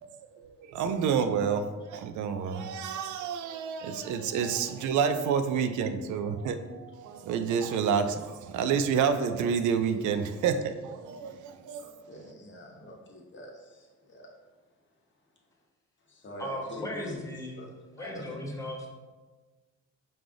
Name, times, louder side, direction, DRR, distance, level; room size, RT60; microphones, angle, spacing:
voice 1, 0.0-11.9, right 6 dB, 75° right, 8 dB, 0.4 m, -29 dB
voice 2, 11.8-14.3 16.1-17.2 17.6-17.7 18.0-18.4, equal, 40° left, -1 dB, 1.0 m, -45 dB
voice 3, 16.4-17.6 17.9-18.9, left 1 dB, 10° left, -1 dB, 1.0 m, -37 dB
4.9 x 2.5 x 3.7 m, 1.3 s
cardioid pair, 90°, 30 cm